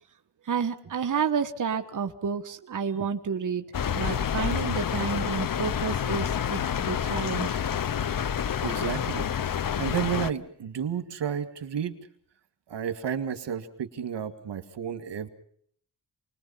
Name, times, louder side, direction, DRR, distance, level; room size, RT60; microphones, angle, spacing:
voice 1, 0.4-3.6 3.9-7.6, right 6 dB, 45° right, 5 dB, 1.4 m, -30 dB
sound 1, 3.7-10.3, left 8 dB, 50° left, 0.9 m, -28 dB
voice 2, 8.6-9.3 9.8-11.9 12.7-15.3, right 8 dB, 80° right, 9 dB, 2.3 m, -31 dB
28.5 x 21.0 x 5.8 m, 0.62 s
wide cardioid pair, 120°, 42 cm